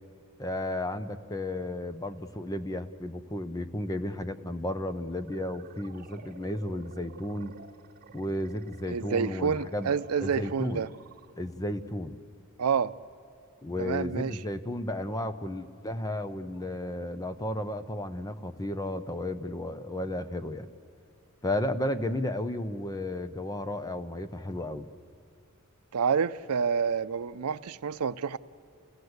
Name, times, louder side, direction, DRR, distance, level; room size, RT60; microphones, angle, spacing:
voice 1, 0.4-7.5 8.1-9.9 10.2-10.9 11.4-12.2 13.6-20.7 21.4-24.9, left 1 dB, 15° left, 11 dB, 0.7 m, -33 dB
sound 1, 5.1-11.6, right 4 dB, 45° right, 1.5 m, -51 dB
voice 2, 8.9-10.9 12.6-12.9 13.8-14.4 25.9-28.4, right 6 dB, 90° right, 14 dB, 0.5 m, -28 dB
28.5 x 16.5 x 8.0 m, 2.6 s
head